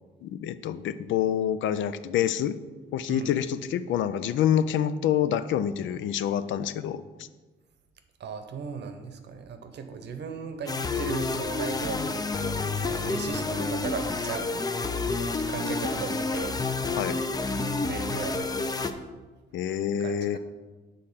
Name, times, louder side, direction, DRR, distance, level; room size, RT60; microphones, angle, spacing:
voice 1, 0.2-2.6 2.9-7.3 17.0-17.2 19.5-20.4, left 9 dB, 75° left, 13 dB, 0.4 m, -27 dB
voice 2, 8.2-12.2 12.6-14.5 15.5-16.6 17.8-18.8 20.0-20.4, right 6 dB, 60° right, 7 dB, 0.8 m, -37 dB
sound 1, 10.7-18.9, left 3 dB, 20° left, 0.5 m, -29 dB
6.5 x 3.8 x 5.6 m, 1.3 s
cardioid pair, 90°, 20 cm